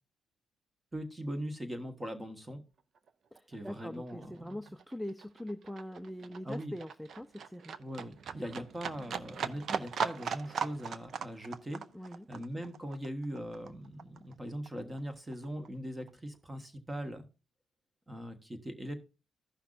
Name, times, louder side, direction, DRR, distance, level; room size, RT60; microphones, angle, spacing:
voice 1, 0.9-2.6 3.5-4.6 6.4-6.7 7.8-11.8 12.3-17.3 18.1-18.9, equal, 15° right, 8 dB, 1.3 m, -40 dB
Livestock farm animals working animals, 3.0-3.1 3.3-14.3 14.7-15.7 16.0-16.1, right 6 dB, 55° right, 0.5 m, -39 dB
voice 2, 3.3-7.7 11.9-12.3, left 1 dB, ahead, 8 dB, 0.5 m, -42 dB
14.5 x 5.8 x 2.5 m, 0.31 s
cardioid pair, 90°, 0 cm